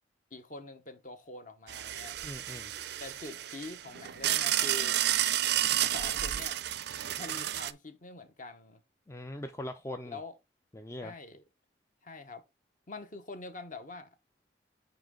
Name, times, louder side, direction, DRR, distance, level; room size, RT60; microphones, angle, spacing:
voice 1, 0.3-2.2 3.0-5.0 5.9-6.6 7.2-8.8 10.1-10.4 11.0-11.4 12.0-12.4 12.9-14.1, left 3 dB, 40° left, 1.0 m, -45 dB
sound 1, 1.7-7.7, right 12 dB, 55° right, 0.4 m, -31 dB
voice 2, 2.2-2.7 9.1-10.2 10.7-11.2, left 1 dB, 15° left, 0.3 m, -41 dB
9.0 x 3.1 x 3.7 m
head